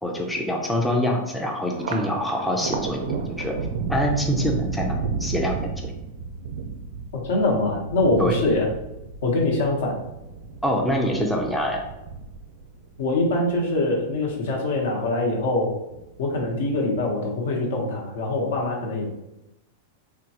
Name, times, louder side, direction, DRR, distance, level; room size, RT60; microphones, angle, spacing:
voice 1, 0.0-3.0 3.4-3.5 3.9-5.9 8.2-8.4 10.6-11.8, equal, 5° left, 0 dB, 0.3 m, -25 dB
Thunder, 1.7-14.4 14.8-15.6 15.9-16.8, right 4 dB, 75° right, 0.4 m, -33 dB
voice 2, 7.1-8.7 9.2-10.0 13.0-15.7 16.2-19.1, left 2 dB, 75° left, -1 dB, 0.9 m, -23 dB
3.6 x 2.2 x 2.8 m, 0.91 s
supercardioid pair, 155°, 0 cm